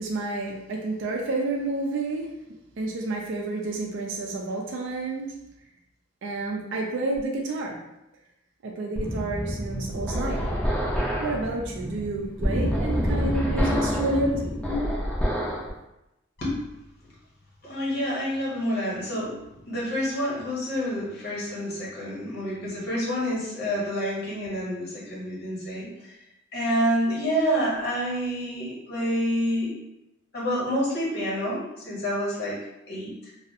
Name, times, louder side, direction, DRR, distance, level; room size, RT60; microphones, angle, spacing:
voice 1, 0.0-2.4 2.8-5.3 6.2-7.8 8.6-10.6 11.2-14.3, right 2 dB, 65° right, 0 dB, 0.4 m, -30 dB
sound 1, 9.0-15.7, equal, 5° left, 0.4 m, -27 dB
voice 2, 13.9-14.3 14.6-14.8 16.4-16.6 17.6-19.3 19.7-26.1 26.5-29.7 30.3-32.6 32.9-33.3, equal, 50° left, -5 dB, 0.9 m, -28 dB
2.4 x 2.0 x 2.6 m, 0.91 s
head